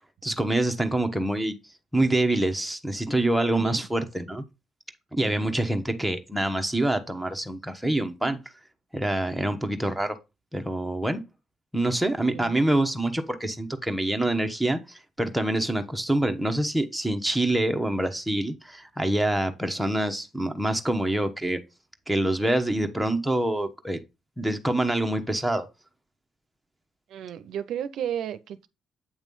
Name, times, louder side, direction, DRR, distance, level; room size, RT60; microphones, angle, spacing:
voice 1, 0.2-1.5 1.9-4.4 5.1-8.4 8.9-10.2 10.5-11.2 11.7-21.6 22.1-24.0 24.4-25.7, right 1 dB, 5° right, 1.0 m, -26 dB
voice 2, 5.2-5.6 12.3-12.5 27.1-28.7, right 9 dB, 80° right, 0.5 m, -33 dB
8.3 x 3.1 x 5.3 m
cardioid pair, 90°, 0 cm